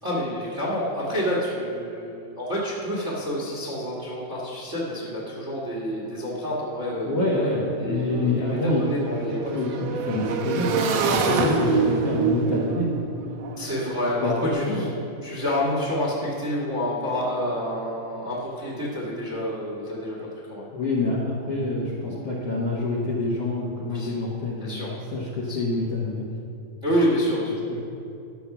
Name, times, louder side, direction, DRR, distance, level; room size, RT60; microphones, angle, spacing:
voice 1, 0.0-9.6 13.6-14.9 15.2-20.7 23.8-24.1 24.6-24.9 25.4-25.6 26.8-27.6, equal, 35° right, -4 dB, 1.2 m, -28 dB
Motorcycle / Engine, 6.9-7.0 7.3-14.4, right 4 dB, 70° right, 2.4 m, -27 dB
voice 2, 7.0-9.0 9.5-12.9 14.2-14.3 14.6-14.8 15.3-15.4 20.7-26.3 27.7-27.8, left 2 dB, 60° left, -4 dB, 1.7 m, -27 dB
12.0 x 7.1 x 5.9 m, 2.8 s
omnidirectional pair, 4.1 m